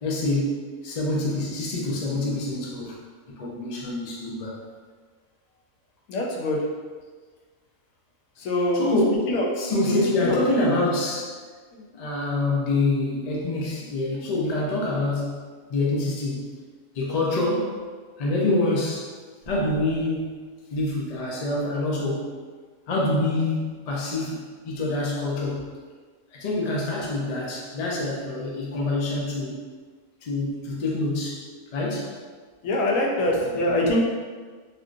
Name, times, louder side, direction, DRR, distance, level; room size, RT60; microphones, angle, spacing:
voice 1, 0.0-3.0 3.4-4.6 8.7-11.3 11.9-15.4 15.7-16.4 16.9-17.7 18.2-19.1 19.5-20.4 20.7-22.4 22.9-25.6 26.3-29.6 30.2-31.4 31.7-32.1, left 2 dB, 90° left, -3 dB, 0.3 m, -26 dB
voice 2, 6.1-6.6 8.4-9.0 9.3-9.5 9.9-10.0 10.2-10.4 11.7-11.8 32.6-34.0, left 1 dB, 70° left, -2 dB, 1.0 m, -24 dB
3.5 x 2.5 x 2.4 m, 1.5 s
omnidirectional pair, 1.6 m